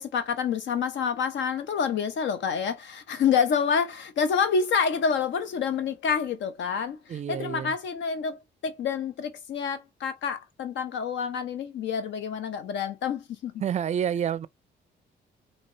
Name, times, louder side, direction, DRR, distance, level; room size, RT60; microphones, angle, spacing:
voice 1, 0.0-13.5, left 6 dB, 70° left, 0.6 m, -28 dB
voice 2, 7.1-7.7 13.6-14.5, right 9 dB, 35° right, 0.4 m, -28 dB
4.2 x 2.8 x 2.7 m
cardioid pair, 90°, 20 cm